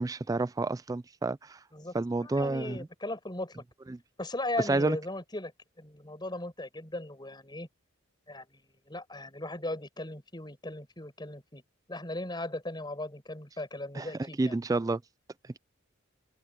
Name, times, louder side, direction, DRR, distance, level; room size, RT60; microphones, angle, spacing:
voice 1, 0.0-1.6 1.9-2.9 3.9-4.0 4.7-5.0 13.9-14.1 14.4-15.0, right 3 dB, 15° right, 0.3 m, -29 dB
voice 2, 1.7-3.6 4.2-5.5 5.8-7.7 8.3-11.6 11.9-14.5, left 1 dB, 20° left, 6.0 m, -38 dB
open air
head